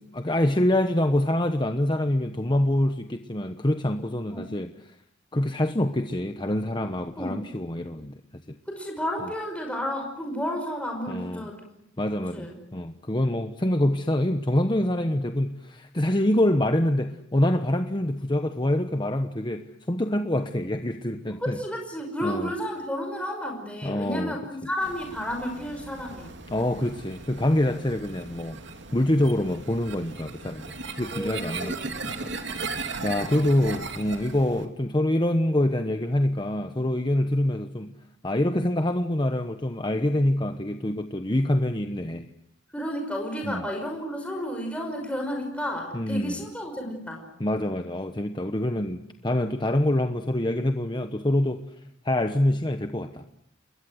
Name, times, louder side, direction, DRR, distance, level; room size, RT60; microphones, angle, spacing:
voice 1, 0.0-4.7 5.3-8.4 11.1-11.4 12.0-21.6 22.2-22.5 23.8-24.4 26.5-28.6 28.9-32.3 32.6-32.7 33.0-37.9 38.2-42.3 43.5-43.6 45.9-46.4 47.4-51.6 52.0-53.3, left 1 dB, 25° left, 7 dB, 1.1 m, -25 dB
voice 2, 7.2-7.5 8.7-11.6 12.3-12.5 21.3-26.4 31.1-31.8 33.3-33.5 42.7-47.3, equal, 5° left, 2 dB, 5.7 m, -32 dB
sound 1, 24.8-34.6, right 3 dB, 65° right, 2.9 m, -37 dB
29.0 x 22.0 x 7.9 m, 0.74 s
head